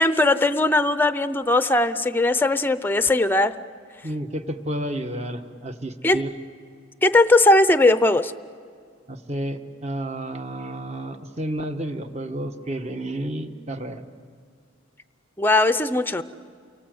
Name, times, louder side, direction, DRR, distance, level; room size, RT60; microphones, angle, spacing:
voice 1, 0.0-3.6 6.0-6.2 7.0-8.3 15.4-16.2, left 2 dB, 10° left, 12 dB, 0.6 m, -19 dB
voice 2, 4.0-6.3 9.1-14.1, right 1 dB, 30° right, 7 dB, 1.3 m, -31 dB
30.0 x 24.0 x 7.8 m, 2.1 s
head